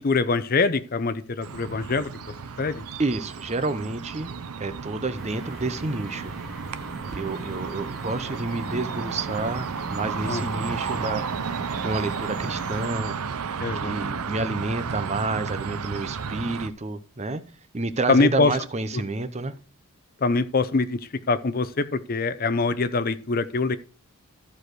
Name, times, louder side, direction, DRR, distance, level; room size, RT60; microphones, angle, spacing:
voice 1, 0.0-2.1 2.6-2.8 10.3-10.4 13.6-14.0 18.1-18.5 20.2-21.0 21.3-23.8, left 3 dB, 40° left, 14 dB, 0.6 m, -23 dB
sound 1, 1.4-16.7, right 6 dB, 85° right, 0.7 m, -33 dB
voice 2, 3.0-6.3 7.1-11.2 11.8-13.2 13.8-17.4 17.7-19.5, right 3 dB, 30° right, 12 dB, 0.7 m, -29 dB
sound 2, 5.1-12.9, right 2 dB, ahead, 1.4 m, -40 dB
13.5 x 4.9 x 4.6 m, 0.38 s
head